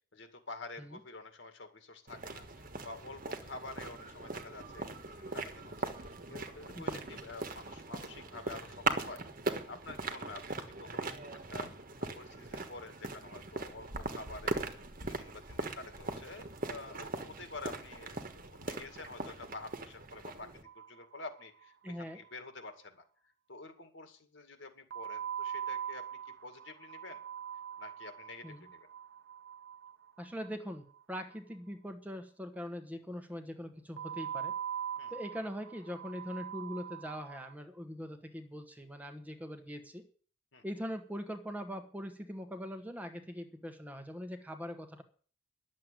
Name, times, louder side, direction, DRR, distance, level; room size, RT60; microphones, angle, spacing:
voice 1, 0.1-11.7 12.0-14.6 15.1-18.2 18.6-20.5 20.7-23.0 23.5-26.0 26.4-27.2 27.8-28.9 35.0-35.1 40.5-40.6, left 3 dB, 65° left, 7 dB, 2.1 m, -48 dB
sound 1, 2.1-20.6, right 3 dB, 45° right, 1.4 m, -40 dB
sound 2, 20.6-21.6 21.9-22.0 22.2-22.3 24.9-31.0 34.0-37.5, right 9 dB, 60° right, 0.9 m, -42 dB
voice 2, 21.8-22.2 28.4-28.7 30.2-34.6 35.1-40.0 40.6-45.0, equal, 10° right, 6 dB, 1.2 m, -42 dB
11.0 x 7.6 x 9.0 m, 0.43 s
head